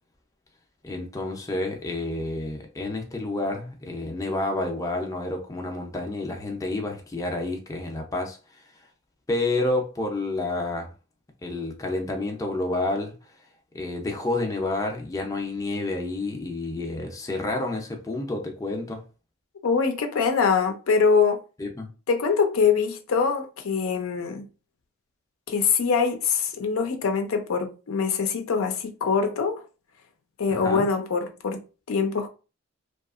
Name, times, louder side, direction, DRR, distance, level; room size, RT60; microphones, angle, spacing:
voice 1, 0.8-8.4 9.3-10.9 11.4-13.1 13.7-19.0 21.6-21.9 30.5-30.9, left 2 dB, 15° left, 0.5 m, -29 dB
voice 2, 19.6-21.4 22.1-24.4 25.5-29.6 30.4-31.6 31.9-32.3, left 5 dB, 80° left, 0.5 m, -23 dB
2.7 x 2.4 x 2.4 m
head